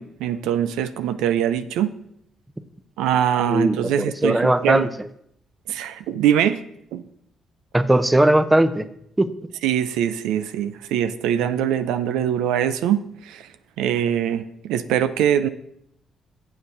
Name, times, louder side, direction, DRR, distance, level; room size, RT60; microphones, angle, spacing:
voice 1, 0.0-1.9 3.0-4.9 5.7-6.6 6.9-7.0 9.6-15.5, right 10 dB, 90° right, 12 dB, 0.5 m, -23 dB
voice 2, 3.5-4.9 7.7-8.9 9.2-9.3, right 1 dB, 15° right, 13 dB, 0.7 m, -18 dB
7.2 x 7.0 x 6.5 m, 0.72 s
cardioid pair, 75°, 0 cm